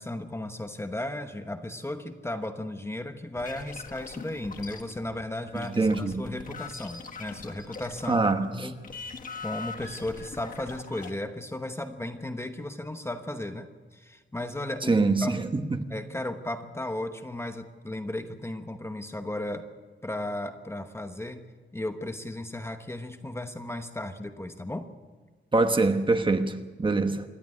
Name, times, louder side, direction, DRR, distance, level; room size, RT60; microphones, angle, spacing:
voice 1, 0.0-8.3 8.5-8.9 9.4-15.5 15.9-19.7 20.0-24.9, left 1 dB, 15° left, 7 dB, 1.0 m, -35 dB
sound 1, 3.3-8.5 8.7-11.1, left 4 dB, 45° left, 1.5 m, -42 dB
voice 2, 5.5-6.2 8.1-8.7 14.9-15.8 25.5-27.2, right 3 dB, 25° right, 7 dB, 1.1 m, -24 dB
26.5 x 12.0 x 9.7 m, 1.4 s
wide cardioid pair, 150°, 20 cm